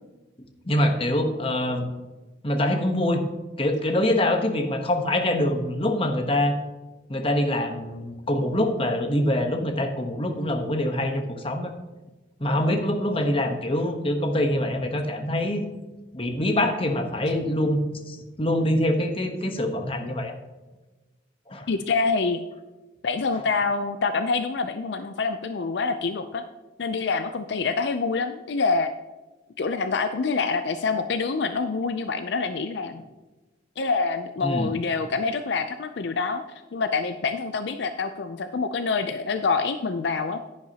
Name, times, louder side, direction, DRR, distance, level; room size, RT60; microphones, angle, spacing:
voice 1, 0.6-1.9 2.4-3.2 3.6-6.6 7.1-11.7 12.4-15.6 16.1-20.3 21.5-21.7 34.4-34.7, left 1 dB, 30° left, 5 dB, 1.0 m, -24 dB
voice 2, 21.7-22.4 23.0-26.4 26.8-28.9 29.6-33.0 33.8-36.4 36.7-40.4, left 4 dB, 65° left, 9 dB, 0.5 m, -26 dB
10.5 x 10.5 x 2.9 m, 1.2 s
head